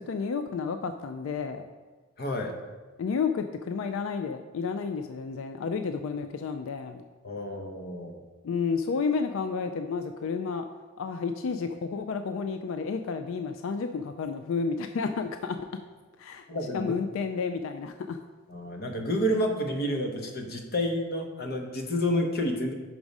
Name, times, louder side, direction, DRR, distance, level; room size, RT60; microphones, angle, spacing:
voice 1, 0.0-1.7 3.0-7.0 8.4-10.7 11.0-15.6 16.2-16.4 16.7-18.2, left 5 dB, 65° left, 8 dB, 0.3 m, -31 dB
voice 2, 2.2-2.6 7.2-8.2 16.5-16.9 18.5-22.7, equal, 45° left, 4 dB, 0.7 m, -29 dB
6.1 x 4.8 x 5.2 m, 1.3 s
head